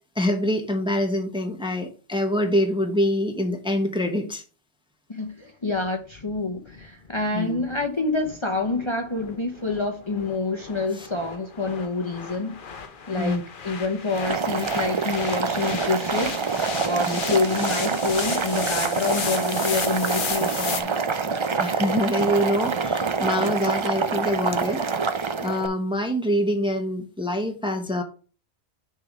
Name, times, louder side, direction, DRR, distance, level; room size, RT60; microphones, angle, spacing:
voice 1, 0.2-4.4 7.3-7.6 10.9-11.1 13.2-13.4 17.0-17.2 21.6-24.8 25.4-28.0, left 1 dB, 5° right, 0.9 m, -25 dB
voice 2, 5.1-12.6 13.1-16.4 16.8-21.0, left 3 dB, 30° left, 0.9 m, -27 dB
sound 1, 5.7-20.8, left 6 dB, 55° left, 1.0 m, -35 dB
Boiling, 14.1-25.7, right 5 dB, 35° right, 0.5 m, -26 dB
6.7 x 3.5 x 6.1 m
omnidirectional pair, 1.1 m